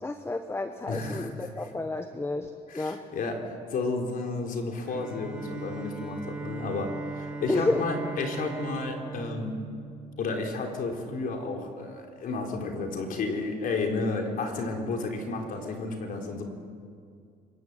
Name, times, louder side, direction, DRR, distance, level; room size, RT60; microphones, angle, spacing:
voice 1, 0.0-3.0 7.5-7.9, left 2 dB, 15° left, 8 dB, 1.2 m, -31 dB
voice 2, 0.9-1.5 2.7-9.6 10.2-16.4, left 3 dB, 55° left, 2 dB, 3.8 m, -32 dB
Bowed string instrument, 4.9-10.7, right 3 dB, 5° right, 6.3 m, -38 dB
25.5 x 15.0 x 9.2 m, 2.3 s
cardioid pair, 110°, 17 cm